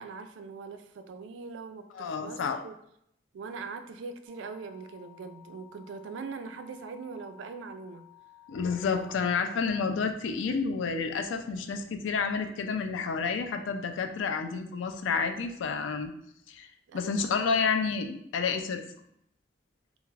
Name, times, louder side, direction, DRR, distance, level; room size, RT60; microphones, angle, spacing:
voice 1, 0.0-2.7 3.3-8.1 8.9-9.1 16.9-17.4, right 4 dB, 75° right, 8 dB, 0.3 m, -42 dB
voice 2, 1.9-2.6 8.5-16.1 16.5-16.7 16.9-18.8, left 5 dB, 80° left, 7 dB, 0.3 m, -30 dB
sound 1, 4.3-9.7, left 12 dB, 30° left, 0.7 m, -56 dB
2.3 x 2.3 x 3.2 m, 0.74 s
head